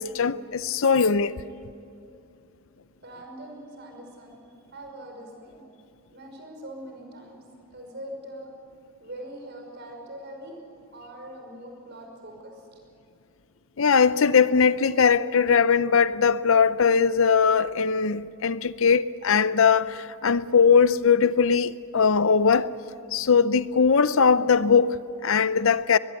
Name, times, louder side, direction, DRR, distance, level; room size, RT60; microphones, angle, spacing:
voice 1, 0.0-1.4 13.8-22.7 23.1-26.0, left 6 dB, 65° left, 0.6 m, -20 dB
voice 2, 3.0-4.4 4.7-5.6 6.1-7.4 7.7-8.5 9.0-10.6 10.9-12.8, right 1 dB, 50° right, 5.7 m, -42 dB
22.0 x 21.5 x 8.4 m
head